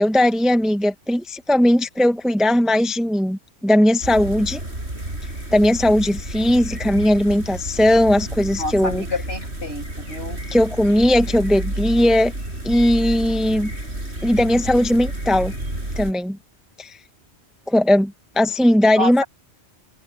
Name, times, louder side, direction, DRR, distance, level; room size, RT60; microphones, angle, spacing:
voice 1, 0.0-4.6 5.5-9.0 10.5-12.3 12.6-13.7 14.2-15.5 16.0-16.4 16.8-17.0 17.7-19.2, left 1 dB, ahead, 0.9 m, -18 dB
sound 1, 4.0-16.1, right 1 dB, 75° right, 7.8 m, -31 dB
voice 2, 8.6-10.4 19.0-19.3, left 1 dB, 65° left, 6.7 m, -28 dB
omnidirectional pair, 1.1 m